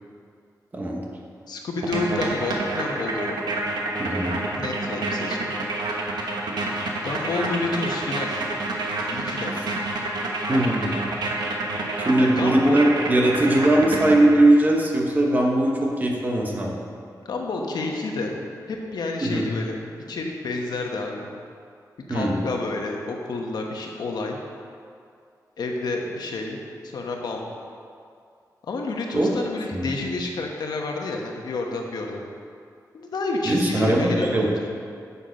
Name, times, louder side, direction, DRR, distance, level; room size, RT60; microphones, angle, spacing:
voice 1, 0.7-1.1 4.0-4.5 10.5-11.0 12.0-16.7 19.2-19.5 22.1-22.4 29.1-29.3 29.7-29.9 33.5-34.6, right 1 dB, 25° right, -1 dB, 1.2 m, -20 dB
voice 2, 1.5-3.4 4.5-5.5 7.0-8.4 9.1-9.7 12.2-12.8 17.2-18.4 18.7-19.8 20.1-21.3 22.1-24.4 25.6-26.6 26.8-27.4 28.7-32.2 32.9-34.7, left 3 dB, 80° left, 1 dB, 1.1 m, -29 dB
sound 1, 1.8-14.6, right 2 dB, 85° right, 1.3 m, -28 dB
9.0 x 7.1 x 5.2 m, 2.3 s
wide cardioid pair, 175°, 7 cm